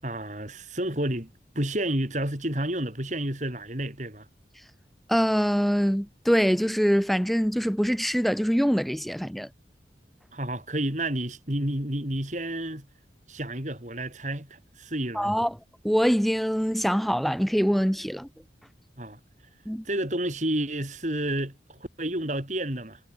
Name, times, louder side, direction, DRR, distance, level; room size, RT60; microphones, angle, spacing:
voice 1, 0.0-4.3 10.3-12.9 13.3-15.3 19.0-19.2 19.8-23.0, right 1 dB, 40° right, 5.6 m, -30 dB
voice 2, 5.1-9.5 15.1-15.6 15.8-18.3 19.7-19.8, equal, ahead, 5.3 m, -24 dB
head